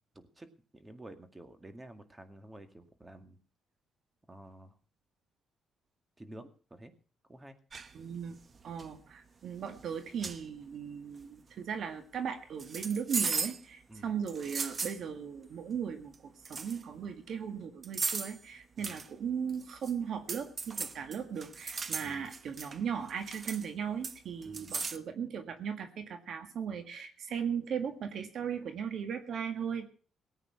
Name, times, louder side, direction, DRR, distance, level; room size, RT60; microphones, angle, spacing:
voice 1, 0.2-0.5 0.7-3.4 4.3-4.7 6.2-6.9 7.3-7.6 13.9-14.1 18.8-19.0 22.0-22.3 24.4-24.8, right 1 dB, 15° right, 8 dB, 2.1 m, -50 dB
sound 1, 7.7-7.9 8.6-8.9 9.8-9.9 10.2-10.4 12.6-13.6 14.3-15.0 16.1-16.2 16.4-16.8 17.8-18.4 18.8-19.1 19.5-19.9 20.3-22.8 23.1-23.7 24.0-25.0, right 5 dB, 40° right, 1.0 m, -36 dB
voice 2, 7.9-8.4 8.6-16.1 16.5-29.9, right 7 dB, 65° right, 8 dB, 1.8 m, -37 dB
18.5 x 8.9 x 5.9 m, 0.40 s
cardioid pair, 90°, 0 cm